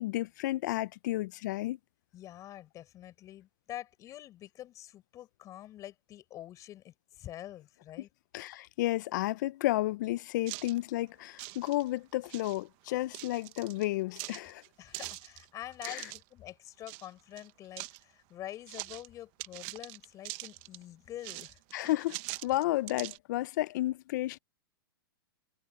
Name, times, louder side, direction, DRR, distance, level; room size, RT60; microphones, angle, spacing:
voice 1, 0.0-1.8 8.3-14.6 15.9-16.0 21.7-22.2 22.4-24.4, left 16 dB, 55° left, 0.5 m, -32 dB
voice 2, 2.1-8.1 14.8-21.6, left 13 dB, 25° left, 6.2 m, -46 dB
sound 1, 10.5-10.8 11.3-12.0 12.2-12.6 13.1-13.9 14.2-16.2 16.9-17.1 17.4-18.0 18.7-19.1 19.4-20.8 21.2-23.2, right 23 dB, 40° right, 1.1 m, -43 dB
hypercardioid pair, 145°, 12 cm